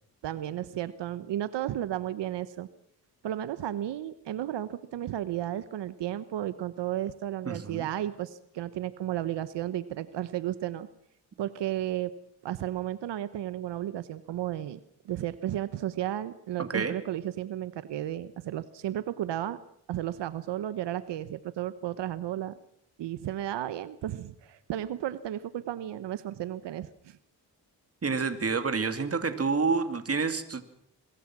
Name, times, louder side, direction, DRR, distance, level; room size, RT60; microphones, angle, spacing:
voice 1, 0.2-2.7 3.2-10.9 11.4-12.1 12.4-14.8 15.0-19.6 19.9-22.6 23.0-27.2, right 12 dB, 90° right, 14 dB, 1.0 m, -33 dB
voice 2, 7.4-7.9 16.6-16.9 28.0-30.6, right 4 dB, 35° right, 9 dB, 2.5 m, -28 dB
24.0 x 22.0 x 6.1 m, 0.70 s
cardioid pair, 80°, 41 cm